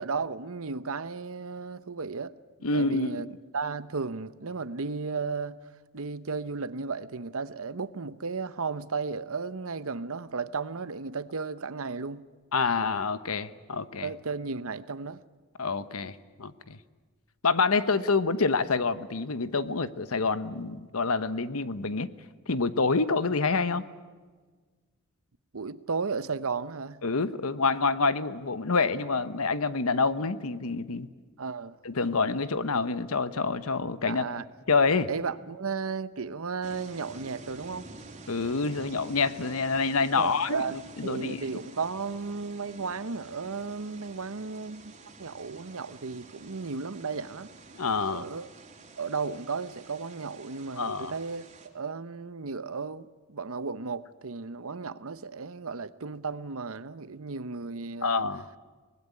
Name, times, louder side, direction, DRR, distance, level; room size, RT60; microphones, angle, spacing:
voice 1, 0.0-2.3 2.6-3.3 3.5-5.6 5.9-12.2 14.0-15.2 25.5-27.0 31.4-31.8 34.1-34.4 35.1-37.9 40.1-44.9 45.2-47.5 48.1-48.5 49.0-51.4 51.7-58.2, right 4 dB, 65° right, 0.9 m, -34 dB
voice 2, 2.6-3.1 12.5-14.1 15.6-16.8 17.4-22.1 22.5-23.8 27.0-31.1 31.8-34.2 34.7-35.1 38.3-41.4 47.8-48.3 50.8-51.1 58.0-58.4, left 4 dB, 70° left, 1.1 m, -27 dB
sound 1, 36.6-51.7, right 3 dB, 30° right, 3.3 m, -49 dB
24.5 x 19.5 x 9.8 m
head